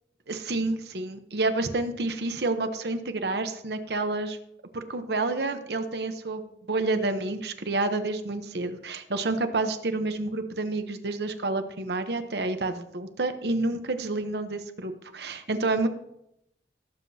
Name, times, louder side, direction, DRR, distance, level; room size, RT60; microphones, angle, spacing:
voice 1, 0.3-4.4 4.7-15.9, right 2 dB, 70° right, 8 dB, 0.9 m, -29 dB
17.5 x 7.5 x 2.8 m, 0.79 s
head